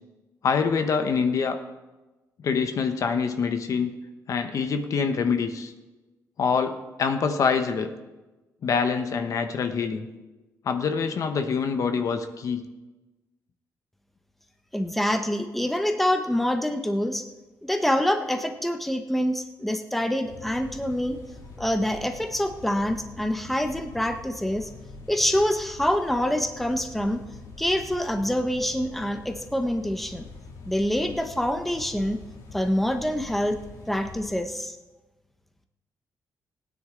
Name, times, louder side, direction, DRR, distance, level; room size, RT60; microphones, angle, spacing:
voice 1, 0.4-1.6 2.4-3.9 4.3-5.7 6.4-7.9 8.6-10.1 10.6-12.6, left 5 dB, 60° left, 7 dB, 1.0 m, -25 dB
voice 2, 14.7-17.2 17.6-21.2 21.6-24.7 25.1-27.2 27.6-30.2 30.7-32.2 32.5-33.6 33.9-34.8, equal, 5° left, 6 dB, 0.9 m, -26 dB
sound 1, 20.2-34.4, left 3 dB, 85° left, 2.4 m, -44 dB
18.0 x 9.7 x 3.8 m, 1.1 s
cardioid pair, 115°, 6 cm